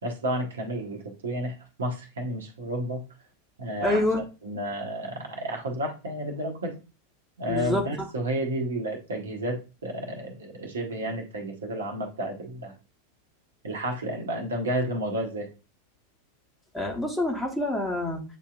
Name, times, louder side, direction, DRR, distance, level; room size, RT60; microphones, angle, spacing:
voice 1, 0.0-3.0 3.6-4.0 4.4-6.7 7.4-12.7 13.6-15.5, right 1 dB, 65° right, 2 dB, 1.1 m, -31 dB
voice 2, 3.8-4.2 7.5-8.1 16.7-18.2, left 1 dB, 5° left, 0 dB, 1.2 m, -27 dB
8.0 x 2.8 x 2.3 m, 0.31 s
figure-of-eight pair, 90°, 0 cm